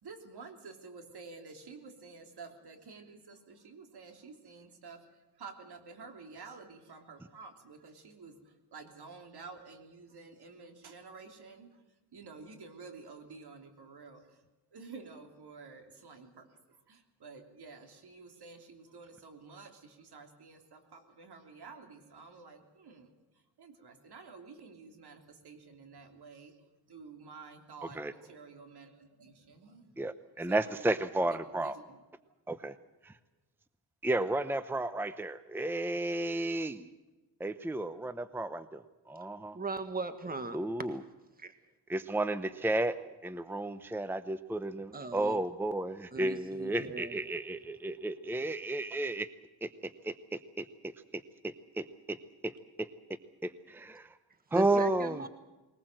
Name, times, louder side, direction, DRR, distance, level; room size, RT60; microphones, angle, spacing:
voice 1, 0.0-11.8 12.1-14.4 14.7-23.1 23.6-26.5 26.9-29.9 30.5-30.9 31.3-32.0, right 4 dB, 70° right, 5 dB, 3.4 m, -51 dB
voice 2, 30.0-31.8 32.5-32.7 33.0-33.1 34.0-36.9 37.4-39.6 40.5-41.0 41.9-43.0 43.2-49.3 49.6-49.7 50.0-50.7 51.1-52.2 52.4-52.9 53.4-54.1 54.5-55.2, right 2 dB, 5° right, 13 dB, 0.7 m, -33 dB
voice 3, 39.5-40.6 41.4-41.5 44.9-45.4 46.1-47.2 54.5-55.3, right 3 dB, 20° right, 10 dB, 1.5 m, -38 dB
21.0 x 20.0 x 7.7 m, 1.1 s
wide cardioid pair, 110°, 40 cm